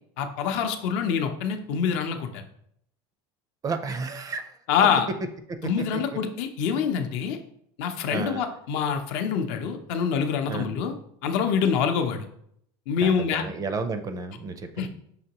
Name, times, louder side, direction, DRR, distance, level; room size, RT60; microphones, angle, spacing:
voice 1, 0.2-2.4 4.7-5.1 5.6-7.4 7.8-10.9 11.2-12.3 12.9-13.4 14.8-14.9, left 7 dB, 70° left, 6 dB, 0.6 m, -25 dB
voice 2, 3.6-4.6 5.5-5.6 5.9-6.2 8.1-8.4 10.4-10.7 13.0-14.9, right 4 dB, 25° right, 8 dB, 0.4 m, -32 dB
5.6 x 2.9 x 2.9 m, 0.70 s
supercardioid pair, 125°, 14 cm